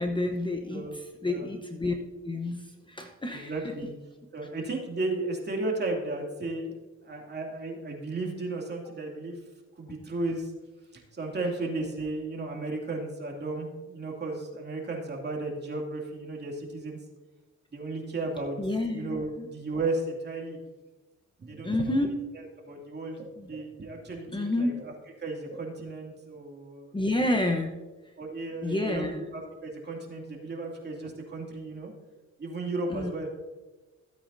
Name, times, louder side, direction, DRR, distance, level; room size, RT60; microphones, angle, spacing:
voice 1, 0.0-1.9 2.2-3.5 18.6-19.5 21.6-22.1 23.4-23.5 24.3-24.8 26.9-27.7 28.6-29.3 32.9-33.1, left 1 dB, 15° left, 4 dB, 0.9 m, -29 dB
voice 2, 0.7-1.5 3.3-3.9 4.3-6.8 7.0-9.4 9.8-10.5 10.9-17.0 17.7-18.6 18.9-20.6 21.4-21.9 22.3-24.9 25.2-27.0 28.2-31.9 32.4-33.3, right 2 dB, 35° right, 0 dB, 2.5 m, -34 dB
16.0 x 8.6 x 2.7 m, 1.2 s
cardioid pair, 90°, 30 cm